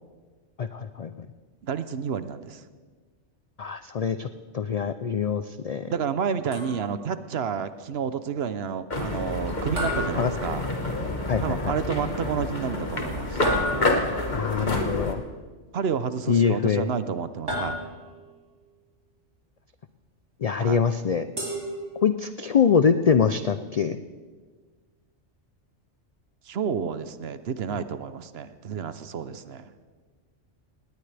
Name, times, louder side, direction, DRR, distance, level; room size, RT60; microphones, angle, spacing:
voice 1, 0.6-1.1 3.6-4.3 4.5-5.9 10.2-10.3 11.3-11.8 14.3-15.2 16.3-16.9 20.4-21.3 22.0-24.0 27.7-27.8, left 6 dB, 75° left, 11 dB, 0.3 m, -24 dB
voice 2, 1.6-2.6 5.9-10.6 11.4-13.4 15.7-17.8 20.5-20.8 26.5-29.7, right 7 dB, 60° right, 12 dB, 0.9 m, -30 dB
sound 1, 6.5-7.1 9.8-11.0 13.4-14.3 17.5-18.3 21.4-22.4, equal, 85° right, 5.4 m, -32 dB
sound 2, 8.9-15.1, left 2 dB, 40° left, 1.6 m, -28 dB
19.0 x 18.5 x 3.4 m, 1.5 s
omnidirectional pair, 1.3 m